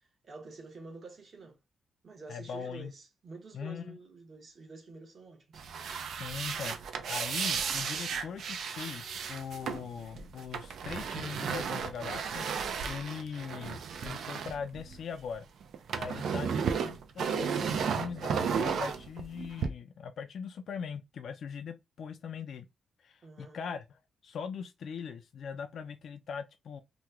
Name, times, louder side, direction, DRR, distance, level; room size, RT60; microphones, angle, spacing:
voice 1, 0.2-1.6 2.0-5.6 16.1-16.6 23.2-23.6, right 3 dB, 40° right, 1.0 m, -49 dB
voice 2, 2.3-2.9 3.5-4.0 6.2-12.5 12.9-15.5 15.9-22.7 23.0-26.8, left 6 dB, 60° left, 0.3 m, -41 dB
sound 1, 5.5-15.3 15.6-19.7, right 6 dB, 70° right, 0.4 m, -34 dB
2.9 x 2.2 x 3.4 m
wide cardioid pair, 160°, 0 cm